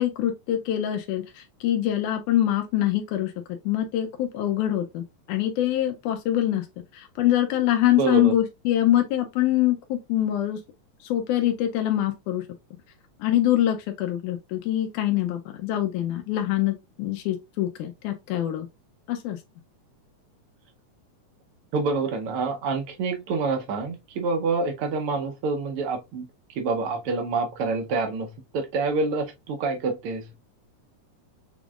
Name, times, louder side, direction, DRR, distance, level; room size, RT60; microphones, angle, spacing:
voice 1, 0.0-3.3 3.7-6.7 6.9-10.6 11.0-12.4 13.2-18.7 19.1-19.4, left 12 dB, 85° left, 2.1 m, -24 dB
voice 2, 8.0-8.3 21.7-30.3, right 3 dB, 75° right, 1.3 m, -27 dB
5.9 x 3.6 x 2.3 m
omnidirectional pair, 3.4 m